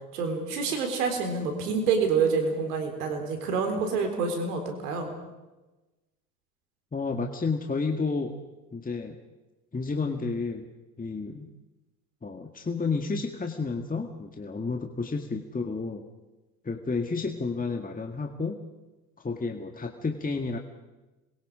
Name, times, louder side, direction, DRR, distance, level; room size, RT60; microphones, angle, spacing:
voice 1, 0.1-5.1, right 5 dB, 80° right, 5 dB, 4.1 m, -27 dB
voice 2, 6.9-8.4 8.7-9.2 9.7-10.7 11.0-11.5 12.2-16.0 16.6-18.6 19.2-20.6, left 4 dB, 20° left, 4 dB, 1.9 m, -31 dB
27.0 x 22.5 x 5.0 m, 1.1 s
hypercardioid pair, 65°, 46 cm